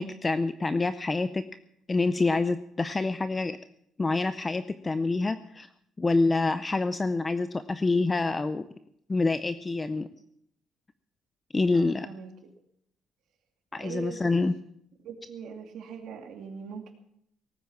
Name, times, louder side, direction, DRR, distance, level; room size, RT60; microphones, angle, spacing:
voice 1, 0.0-1.4 1.9-3.6 4.0-5.7 6.0-8.7 9.1-10.1 11.5-12.1 13.7-14.5, left 3 dB, 15° left, 12 dB, 0.5 m, -26 dB
voice 2, 11.7-12.3 13.8-14.3 15.0-16.9, right 6 dB, 65° right, 4 dB, 2.6 m, -41 dB
18.0 x 9.1 x 7.4 m, 0.72 s
cardioid pair, 150°, 0 cm